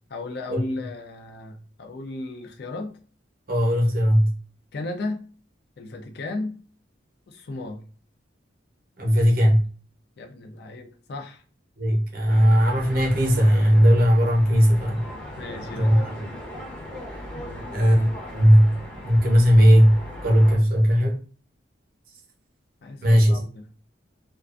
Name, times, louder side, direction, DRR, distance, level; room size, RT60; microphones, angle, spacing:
voice 1, 0.1-3.0 4.7-5.2 5.8-6.6 7.3-7.8 10.2-11.4 15.4-16.0 17.3-17.7 22.8-23.7, left 2 dB, 55° left, 3 dB, 0.4 m, -35 dB
voice 2, 3.5-4.3 9.0-9.6 11.8-15.0 15.7-16.3 17.7-18.8 19.0-21.2 23.0-23.4, equal, 45° right, 0 dB, 0.7 m, -18 dB
sound 1, 12.3-20.6, left 1 dB, 5° left, 0.6 m, -38 dB
2.4 x 2.2 x 2.4 m, 0.40 s
head